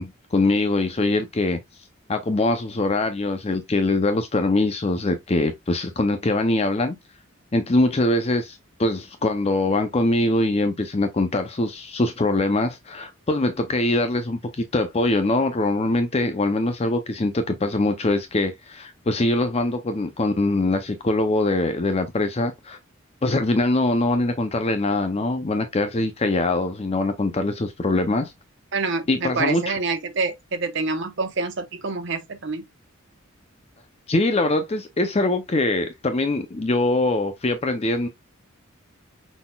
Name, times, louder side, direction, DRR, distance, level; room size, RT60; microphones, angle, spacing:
voice 1, 0.0-1.6 2.1-7.0 7.5-22.8 23.2-28.3 29.1-29.8 34.1-38.1, left 2 dB, 30° left, 0.5 m, -23 dB
voice 2, 28.7-32.6, right 4 dB, 60° right, 0.9 m, -27 dB
5.7 x 4.1 x 2.3 m
head